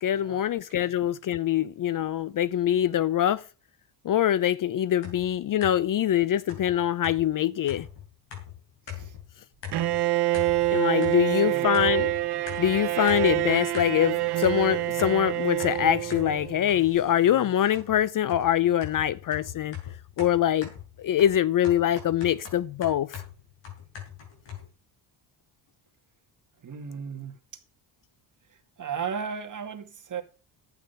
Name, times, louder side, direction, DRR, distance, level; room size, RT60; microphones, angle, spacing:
voice 1, 0.0-3.4 4.0-7.9 10.7-12.1 12.6-19.8 20.2-20.7 21.0-23.2, left 11 dB, 45° left, 0.5 m, -24 dB
sound 1, 5.0-6.0 6.5-9.3 9.6-10.1 10.3-11.4 11.7-14.1 14.4-17.1 17.7-24.7, left 9 dB, 65° left, 7.0 m, -41 dB
Bowed string instrument, 9.7-16.6, right 17 dB, 60° right, 0.9 m, -26 dB
sound 2, 12.3-17.8, left 2 dB, 20° left, 5.7 m, -51 dB
voice 2, 26.6-27.3 28.8-30.2, right 7 dB, 40° right, 2.3 m, -35 dB
11.5 x 9.0 x 5.6 m
cardioid pair, 110°, 45 cm